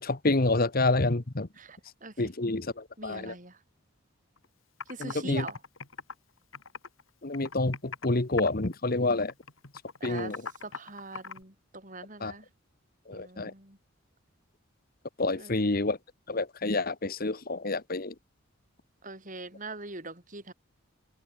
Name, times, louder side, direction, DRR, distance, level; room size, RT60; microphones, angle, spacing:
voice 1, 0.0-1.5 2.2-3.3 5.0-5.4 7.2-9.3 10.0-10.4 12.2-12.3 13.1-13.5 15.2-16.0 16.3-18.1, left 2 dB, 45° left, 1.3 m, -28 dB
voice 2, 1.6-2.3 3.0-3.6 4.9-5.6 10.0-12.5 13.1-13.8 15.4-15.7 19.0-20.5, right 3 dB, 40° right, 7.3 m, -43 dB
Computer keyboard, 4.4-4.5 4.8-5.1 5.5-7.0 7.3-8.1 8.4-8.8 9.1-11.4, left 5 dB, 80° left, 3.8 m, -41 dB
head